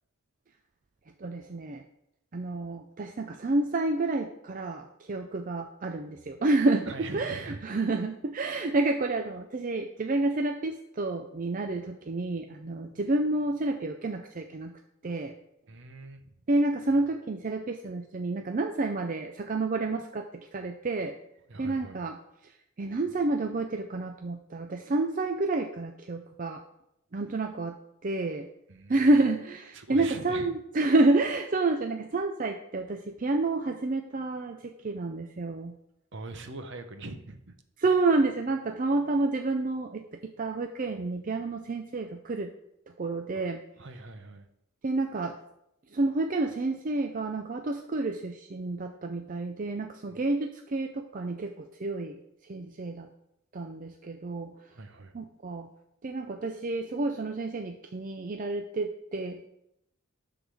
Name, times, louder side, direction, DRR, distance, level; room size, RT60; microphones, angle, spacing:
voice 1, 1.2-1.8 2.3-14.7 15.0-15.3 16.5-20.3 20.5-21.1 21.6-22.2 22.8-26.6 27.1-27.7 28.0-28.5 28.9-34.6 34.8-35.7 37.8-42.5 43.0-43.6 44.8-45.3 45.9-52.2 52.5-53.1 53.5-54.5 55.1-55.7 56.0-59.5, right 2 dB, 35° right, 5 dB, 0.4 m, -29 dB
voice 2, 6.9-7.6 15.7-16.3 21.5-22.0 28.7-29.0 29.7-30.5 36.1-37.5 43.3-43.4 43.8-44.5 50.1-50.2 54.7-55.1, right 2 dB, 55° right, 8 dB, 0.8 m, -42 dB
10.0 x 4.0 x 6.2 m, 0.80 s
head